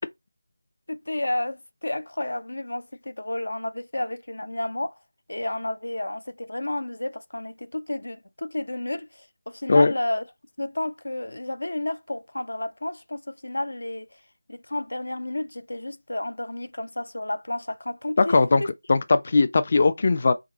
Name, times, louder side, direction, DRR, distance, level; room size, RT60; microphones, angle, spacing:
voice 1, 0.9-4.9 5.3-10.2 10.6-14.1 14.5-18.7, left 1 dB, 85° left, 0.6 m, -31 dB
voice 2, 18.2-18.6 18.9-20.3, left 3 dB, 35° left, 0.4 m, -19 dB
3.7 x 2.6 x 3.9 m
figure-of-eight pair, 170°, 0 cm